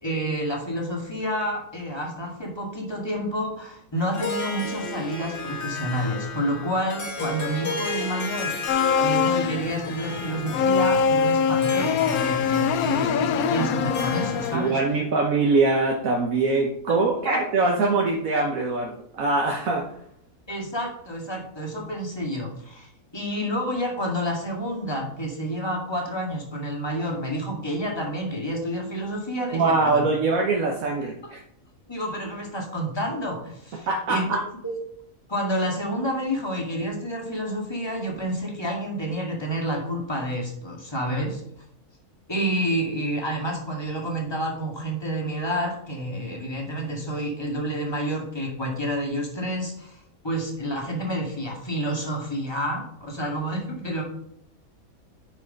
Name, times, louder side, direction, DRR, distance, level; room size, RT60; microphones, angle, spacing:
voice 1, 0.0-8.5 9.0-14.8 16.9-17.0 17.2-17.4 20.5-30.0 31.2-31.3 31.9-34.2 34.6-34.8 35.3-41.4 42.3-54.0, equal, 15° left, -1 dB, 2.1 m, -29 dB
Harp, 4.0-14.9, left 3 dB, 40° left, 1.4 m, -34 dB
sound 1, 8.7-14.6, left 6 dB, 85° left, 1.1 m, -23 dB
voice 2, 14.5-19.8 29.5-31.4 33.9-34.4, right 3 dB, 70° right, 0 dB, 1.5 m, -23 dB
9.9 x 4.8 x 5.3 m, 0.71 s
omnidirectional pair, 1.5 m